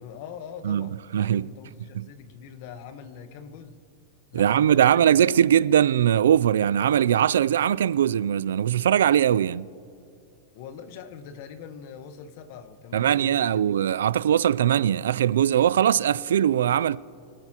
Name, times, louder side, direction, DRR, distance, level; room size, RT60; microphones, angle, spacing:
voice 1, 0.0-3.8 4.3-5.3 10.5-13.6, left 7 dB, 50° left, 1.1 m, -43 dB
voice 2, 0.6-1.5 1.9-2.1 4.3-9.7 12.9-17.0, right 10 dB, 90° right, 0.3 m, -21 dB
25.5 x 9.0 x 2.9 m
supercardioid pair, 150°, 0 cm